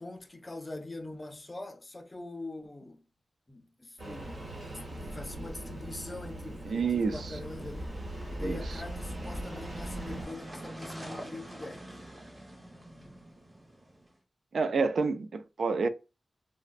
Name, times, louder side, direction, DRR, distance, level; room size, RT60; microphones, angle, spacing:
voice 1, 0.0-3.1 3.5-12.0, left 2 dB, 25° left, 0.5 m, -43 dB
Engine starting, 4.0-10.3, right 1 dB, 50° right, 1.5 m, -40 dB
voice 2, 6.7-7.3 8.4-8.6 14.5-15.9, right 4 dB, 80° right, 0.4 m, -28 dB
sound 1, 7.1-14.1, right 1 dB, 25° right, 1.1 m, -47 dB
4.1 x 2.1 x 2.4 m
wide cardioid pair, 125°, 0 cm